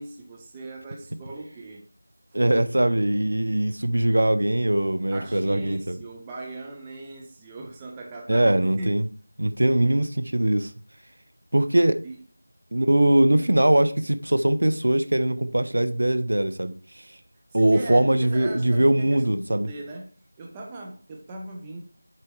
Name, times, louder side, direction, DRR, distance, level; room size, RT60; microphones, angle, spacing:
voice 1, 0.0-1.8 5.1-9.0 12.0-12.2 12.7-12.8 13.3-13.7 17.5-21.8, right 2 dB, 10° right, 0.6 m, -39 dB
voice 2, 2.3-6.0 8.3-9.1 9.4-10.7 11.5-12.0 12.7-16.7 17.5-19.7, right 1 dB, 65° right, 0.8 m, -21 dB
7.7 x 4.4 x 4.7 m
figure-of-eight pair, 175°, 0 cm